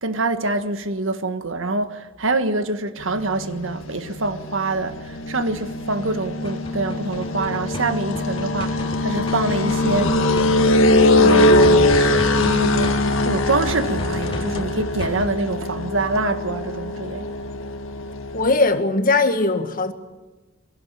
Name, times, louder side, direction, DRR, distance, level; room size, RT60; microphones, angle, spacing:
voice 1, 0.0-10.2 11.2-17.3, right 3 dB, 70° right, 1.5 m, -25 dB
sound 1, 3.0-18.5, left 2 dB, 75° left, 1.9 m, -21 dB
sound 2, 6.4-12.5 12.8-15.3, left 1 dB, 25° left, 3.4 m, -33 dB
voice 2, 18.3-19.9, left 3 dB, 45° left, 1.8 m, -19 dB
23.0 x 17.0 x 9.0 m
head